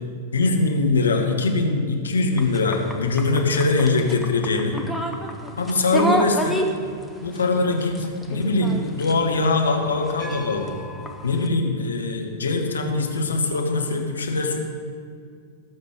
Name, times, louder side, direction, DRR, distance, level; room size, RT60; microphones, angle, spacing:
voice 1, 0.3-4.8 5.6-6.7 7.2-10.7 11.2-14.6, left 3 dB, 75° left, 2 dB, 1.5 m, -22 dB
sound 1, 2.3-11.5, equal, 5° left, 1.1 m, -31 dB
18.0 x 6.6 x 5.1 m, 2.1 s
figure-of-eight pair, 95°, 0 cm